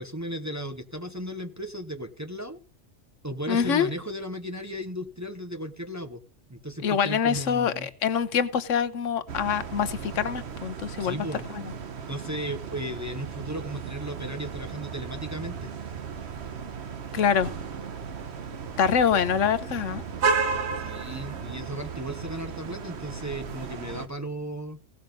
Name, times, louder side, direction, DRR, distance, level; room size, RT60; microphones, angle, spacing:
voice 1, 0.0-2.6 3.2-6.2 6.5-7.9 11.0-11.5 12.1-15.7 20.8-24.8, equal, 15° right, 0.8 m, -35 dB
voice 2, 3.5-3.9 6.8-11.2 11.5-11.6 17.1-17.5 18.8-20.0, left 7 dB, 85° left, 1.2 m, -25 dB
sound 1, 9.3-24.1, right 5 dB, 60° right, 1.3 m, -34 dB
17.0 x 5.8 x 5.2 m
omnidirectional pair, 1.3 m